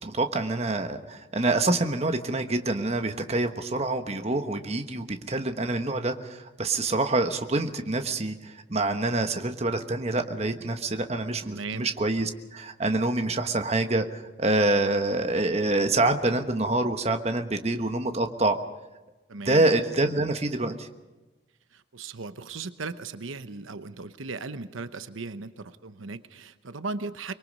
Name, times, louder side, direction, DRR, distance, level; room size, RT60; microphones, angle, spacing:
voice 1, 0.0-18.6 19.5-20.9, right 2 dB, 30° right, 7 dB, 1.2 m, -26 dB
voice 2, 11.5-11.9 19.3-19.6 21.7-27.3, right 3 dB, 85° right, 11 dB, 0.9 m, -37 dB
24.0 x 22.5 x 5.4 m, 1.1 s
head